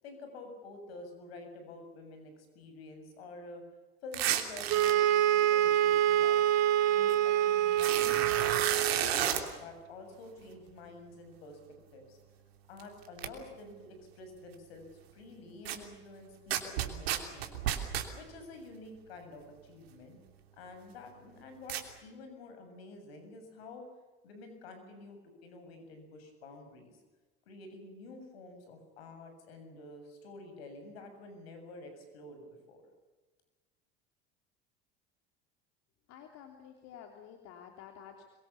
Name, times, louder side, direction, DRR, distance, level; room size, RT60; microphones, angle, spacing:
voice 1, 0.0-3.6 4.0-6.4 6.9-11.6 11.9-12.2 12.7-14.8 15.1-17.6 18.1-20.2 20.6-23.8 24.2-27.0 27.5-32.8, left 2 dB, 80° left, 6 dB, 7.3 m, -49 dB
sound 1, 4.1-4.9 7.1-7.2 7.7-9.4 12.8-12.9 13.2-13.3 15.7-15.8 16.5-18.1 21.7-21.8, right 11 dB, 80° right, 3.1 m, -31 dB
sound 2, 4.7-9.1, right 11 dB, 60° right, 2.2 m, -26 dB
voice 2, 36.1-38.3, left 8 dB, 60° left, 4 dB, 3.2 m, -51 dB
26.0 x 23.5 x 7.1 m, 1.2 s
hypercardioid pair, 75°, 30 cm